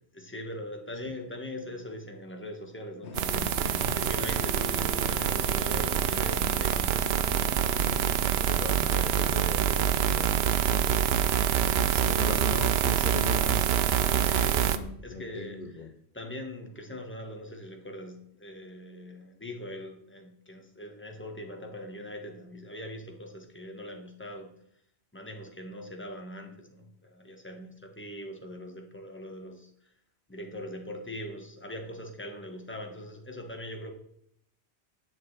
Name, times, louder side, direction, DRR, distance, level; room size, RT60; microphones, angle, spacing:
voice 1, 0.1-7.0 14.1-14.8 15.0-15.9 16.1-24.5 25.1-29.9 30.3-33.9, left 1 dB, 10° left, 2 dB, 1.4 m, -42 dB
sound 1, 3.0-8.2, left 4 dB, 90° left, 1.1 m, -41 dB
sound 2, 3.1-14.8, right 9 dB, 70° right, 0.9 m, -26 dB
voice 2, 3.6-4.0 8.3-13.7 14.7-15.9, left 4 dB, 55° left, 4 dB, 0.9 m, -39 dB
10.5 x 6.6 x 4.8 m, 0.70 s
omnidirectional pair, 1.1 m